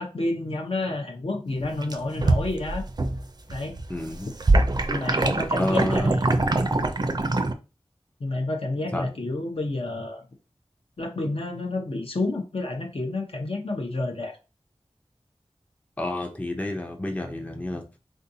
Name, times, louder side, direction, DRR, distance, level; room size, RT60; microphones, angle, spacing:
voice 1, 0.0-2.8 3.5-3.8 4.9-6.3 8.2-10.2 11.0-14.4, left 2 dB, 60° left, 0.7 m, -29 dB
sound 1, 1.6-3.2 3.5-7.5, right 2 dB, 40° right, 0.4 m, -23 dB
voice 2, 3.9-4.3 5.6-6.1 8.9-9.1 16.0-17.8, left 1 dB, 15° left, 0.5 m, -29 dB
3.6 x 2.6 x 2.7 m
wide cardioid pair, 60°, 11 cm